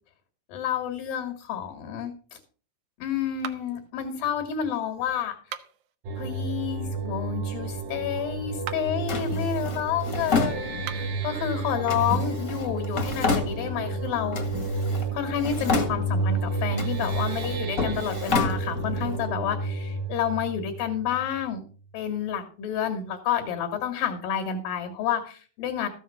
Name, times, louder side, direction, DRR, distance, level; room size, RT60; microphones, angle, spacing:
voice 1, 0.5-2.4 3.0-5.4 6.2-14.4 15.1-21.6 21.9-25.9, left 9 dB, 80° left, 5 dB, 3.5 m, -29 dB
sound 1, 3.4-3.9 5.4-6.0 8.5-9.0 10.7-11.2, right 10 dB, 75° right, 2.1 m, -39 dB
sound 2, 6.1-21.5, right 3 dB, 90° right, 3.0 m, -31 dB
Drawer open or close, 9.1-11.2 11.9-14.0 14.3-15.1 15.4-16.3 16.7-19.2, left 4 dB, 40° left, 1.3 m, -30 dB
14.0 x 7.3 x 5.8 m, 0.41 s
omnidirectional pair, 4.0 m